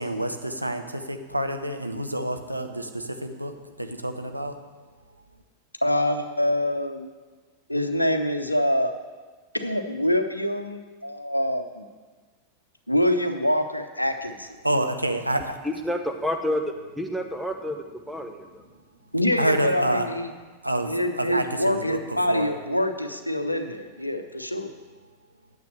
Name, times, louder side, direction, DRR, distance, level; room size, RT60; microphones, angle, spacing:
voice 1, 0.0-4.6 14.6-15.6 19.3-20.1 20.6-22.6, right 1 dB, 85° right, 6 dB, 0.9 m, -28 dB
voice 2, 5.8-7.1 7.7-8.9 9.5-11.9 12.9-14.5 19.1-20.3 20.9-24.7, left 1 dB, 85° left, 7 dB, 0.8 m, -25 dB
voice 3, 15.6-18.6, left 1 dB, 5° right, 4 dB, 1.1 m, -29 dB
9.3 x 7.4 x 7.8 m, 1.4 s
figure-of-eight pair, 90°, 0 cm